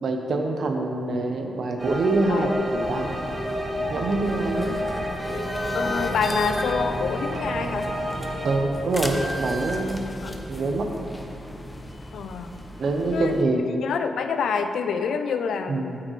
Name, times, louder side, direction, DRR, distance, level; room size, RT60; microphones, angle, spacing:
voice 1, 0.0-3.1 3.9-4.8 5.8-5.9 8.4-10.0 10.5-10.9 12.8-13.6 15.7-16.0, right 2 dB, 55° right, 3 dB, 0.7 m, -25 dB
sound 1, 1.8-8.6, equal, 25° right, 1.1 m, -30 dB
voice 2, 2.3-2.6 5.7-7.9 10.2-10.4 12.1-12.5 13.1-13.4 13.8-16.0, left 6 dB, 85° left, 8 dB, 0.4 m, -27 dB
sound 2, 2.8-13.4, equal, 10° left, 0.6 m, -35 dB
8.4 x 6.5 x 3.1 m, 2.7 s
wide cardioid pair, 145°, 0 cm